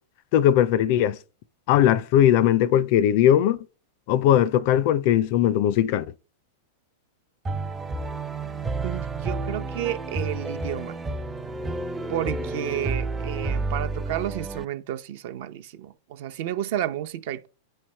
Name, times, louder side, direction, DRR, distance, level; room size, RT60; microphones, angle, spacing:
voice 1, 0.3-1.2 1.7-3.6 4.1-6.0, left 11 dB, 55° left, 0.4 m, -19 dB
sound 1, 7.4-14.6, right 3 dB, 15° right, 0.4 m, -30 dB
voice 2, 8.8-11.0 12.1-17.5, right 12 dB, 60° right, 0.6 m, -31 dB
8.7 x 3.2 x 4.3 m
hypercardioid pair, 110°, 0 cm